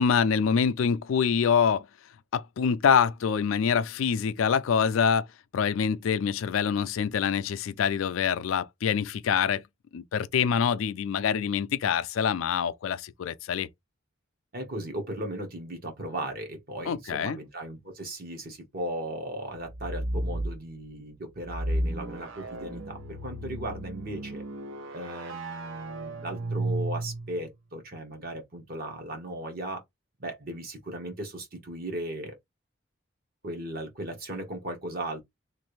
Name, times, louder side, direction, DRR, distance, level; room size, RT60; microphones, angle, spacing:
voice 1, 0.0-1.9 2.3-5.3 5.5-9.6 9.9-13.7 16.9-17.4, left 7 dB, 75° left, 0.4 m, -25 dB
voice 2, 14.5-24.4 24.9-29.8 30.2-32.4 33.4-35.2, right 1 dB, 45° right, 1.1 m, -37 dB
sound 1, 19.6-20.6 21.4-27.4, right 1 dB, 70° right, 0.7 m, -33 dB
3.2 x 2.5 x 3.1 m
head